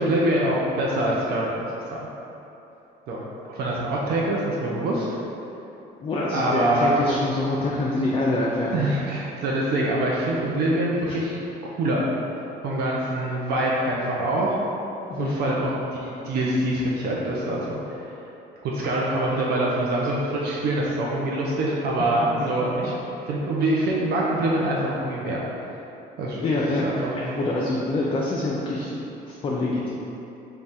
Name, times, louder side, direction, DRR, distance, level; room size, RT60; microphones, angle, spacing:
voice 1, 0.0-2.0 3.1-3.2 3.5-5.1 6.3-7.0 8.7-11.4 11.8-12.0 12.6-14.6 15.2-15.7 16.0-18.1 18.6-22.9 23.3-25.4 26.2-26.5 26.8-27.2, right 1 dB, 70° right, -5 dB, 0.5 m, -24 dB
voice 2, 6.0-8.9 11.1-11.2 15.1-15.4 26.4-28.9 29.2-29.9, left 2 dB, 30° left, -4 dB, 0.4 m, -25 dB
3.6 x 2.3 x 4.1 m, 3.0 s
cardioid pair, 110°, 17 cm